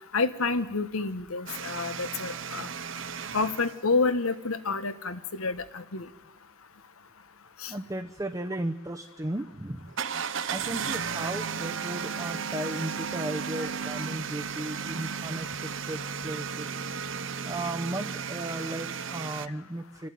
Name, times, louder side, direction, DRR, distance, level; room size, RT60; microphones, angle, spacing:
voice 1, 0.1-2.7 3.3-6.1 7.6-7.7, left 4 dB, 90° left, 12 dB, 1.3 m, -29 dB
sound 1, 1.5-3.8 9.9-19.5, right 6 dB, 60° right, 0.8 m, -34 dB
voice 2, 7.7-9.9 10.5-15.5 15.9-16.7 17.4-20.1, right 1 dB, 15° right, 4 dB, 0.7 m, -35 dB
27.5 x 12.0 x 9.3 m, 1.0 s
head